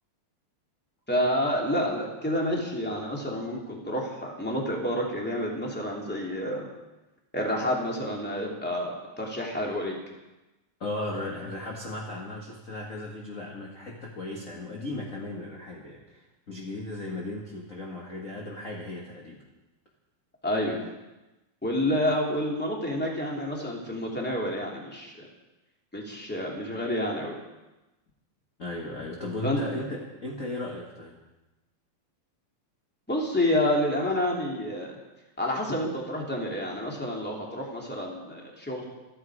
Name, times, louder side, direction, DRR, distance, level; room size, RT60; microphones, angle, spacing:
voice 1, 1.1-6.7 7.3-10.0 20.4-20.8 21.6-25.3 25.9-27.4 29.4-29.6 33.1-34.9 35.4-38.8, left 1 dB, 5° left, -1 dB, 2.3 m, -29 dB
voice 2, 10.8-19.4 28.6-31.2, left 2 dB, 35° left, -2 dB, 1.3 m, -36 dB
27.0 x 9.6 x 4.9 m, 1.0 s
omnidirectional pair, 4.2 m